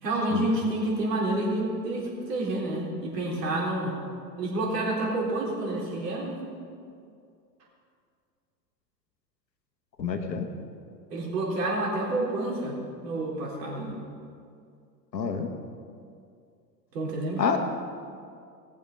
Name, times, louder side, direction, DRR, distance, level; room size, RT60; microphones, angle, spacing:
voice 1, 0.0-3.9 4.4-6.4 11.1-12.7 13.0-13.9 16.9-17.4, right 2 dB, 70° right, -3 dB, 4.0 m, -29 dB
voice 2, 10.0-10.5 15.1-15.5 17.4-17.6, left 6 dB, 90° left, 6 dB, 1.4 m, -27 dB
19.0 x 7.2 x 5.3 m, 2.3 s
hypercardioid pair, 95°, 49 cm